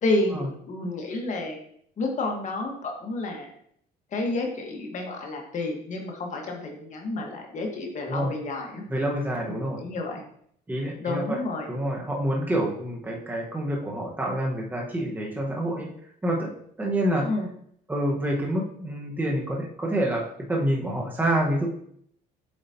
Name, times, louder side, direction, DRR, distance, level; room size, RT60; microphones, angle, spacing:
voice 1, 0.0-1.6 2.0-3.5 4.1-8.8 9.5-10.2 11.0-11.7 17.2-17.5, left 2 dB, 45° left, 1 dB, 1.5 m, -30 dB
voice 2, 8.9-9.8 10.7-11.4 11.7-15.9 16.2-17.3 17.9-21.7, right 1 dB, 10° right, -2 dB, 1.3 m, -27 dB
8.0 x 4.8 x 2.8 m, 0.66 s
cardioid pair, 110°, 17 cm